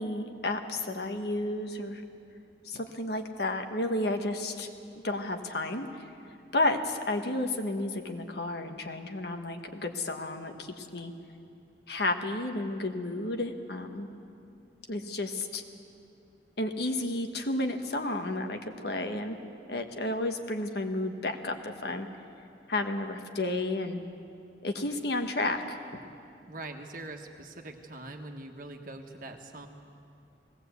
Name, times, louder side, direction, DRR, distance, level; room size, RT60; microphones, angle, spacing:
voice 1, 0.0-2.0 2.6-4.7 5.0-5.9 6.5-11.1 11.9-14.1 14.9-15.6 16.6-19.4 19.7-22.1 22.7-24.0 24.6-25.8, left 2 dB, 60° left, 5 dB, 1.3 m, -32 dB
voice 2, 26.5-29.7, right 2 dB, 45° right, 3 dB, 1.4 m, -43 dB
19.5 x 17.5 x 8.2 m, 2.5 s
head